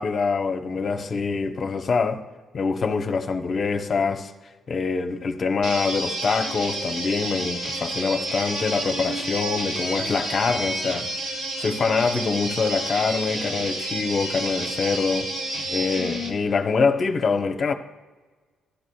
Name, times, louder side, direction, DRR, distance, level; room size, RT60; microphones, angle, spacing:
voice 1, 0.0-2.2 2.5-4.3 4.7-11.1 11.6-15.3 15.7-17.7, left 4 dB, 45° left, 0.9 m, -24 dB
sound 1, 5.6-16.3, right 1 dB, 80° right, 3.1 m, -30 dB
15.5 x 12.0 x 2.3 m
cardioid pair, 90°, 0 cm